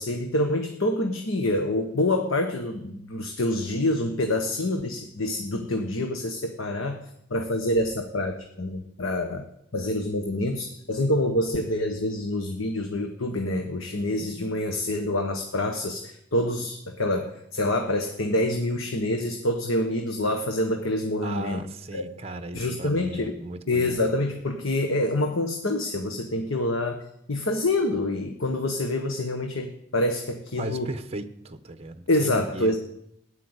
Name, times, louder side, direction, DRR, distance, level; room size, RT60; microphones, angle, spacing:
voice 1, 0.0-7.0 7.3-9.4 9.7-21.6 21.9-22.0 22.5-23.3 23.7-30.9 32.1-32.8, left 1 dB, 90° left, 5 dB, 1.4 m, -26 dB
voice 2, 21.2-24.0 30.6-32.8, right 2 dB, 30° right, 9 dB, 1.0 m, -37 dB
15.0 x 10.5 x 8.1 m, 0.76 s
head